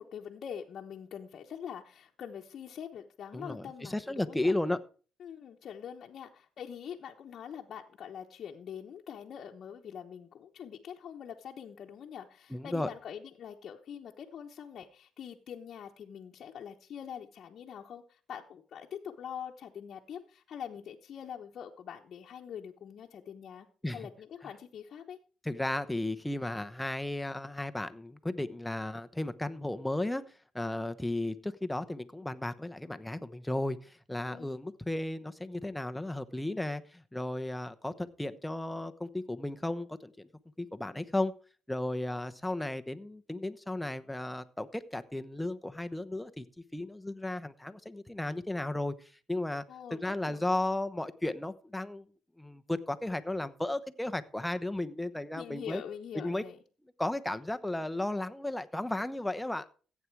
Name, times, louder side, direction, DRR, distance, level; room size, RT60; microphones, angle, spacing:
voice 1, 0.0-4.5 5.2-25.2 34.3-34.8 49.7-50.4 55.3-56.6, left 8 dB, 60° left, 0 dB, 1.0 m, -44 dB
voice 2, 3.3-4.8 12.5-12.9 23.8-24.1 25.4-30.2 30.5-40.3 40.6-41.3 41.7-46.4 46.7-49.6 49.9-52.1 52.4-55.8 56.1-56.4 57.0-59.7, left 1 dB, 5° left, 10 dB, 1.0 m, -34 dB
15.0 x 8.5 x 4.7 m, 0.40 s
cardioid pair, 90°, 0 cm